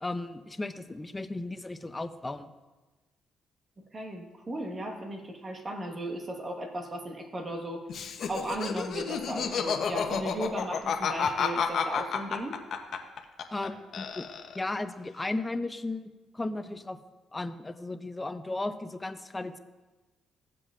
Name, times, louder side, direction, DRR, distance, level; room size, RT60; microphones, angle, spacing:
voice 1, 0.0-2.5 13.5-14.3 14.5-17.0 17.3-19.6, left 2 dB, 20° left, 10 dB, 0.5 m, -35 dB
voice 2, 3.9-7.9 8.3-12.6, right 1 dB, 30° right, 3 dB, 1.4 m, -36 dB
Laughter, 7.9-13.7 13.9-14.7, left 6 dB, 65° left, 0.8 m, -30 dB
15.5 x 7.6 x 2.5 m, 1.2 s
cardioid pair, 90°, 0 cm